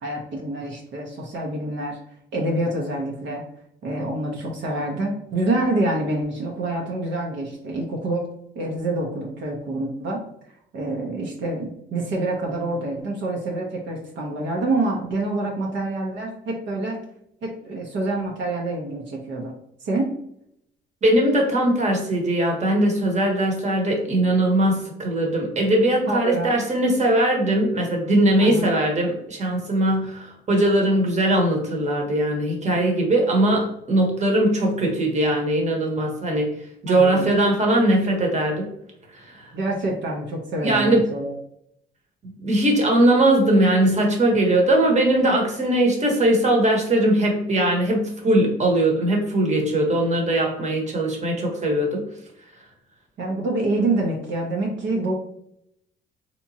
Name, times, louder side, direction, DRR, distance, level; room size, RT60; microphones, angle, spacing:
voice 1, 0.0-2.0 2.3-3.4 3.8-8.3 8.6-10.2 10.7-17.0 17.4-19.5 19.8-20.1 26.1-26.5 28.4-28.7 36.9-37.3 39.5-41.4 53.2-55.1, right 2 dB, 70° right, -1 dB, 0.8 m, -26 dB
voice 2, 21.0-36.5 36.8-38.7 39.1-39.5 40.6-41.1 42.2-52.0, right 1 dB, 35° right, 1 dB, 1.1 m, -20 dB
3.4 x 2.9 x 2.7 m, 0.73 s
cardioid pair, 90°, 20 cm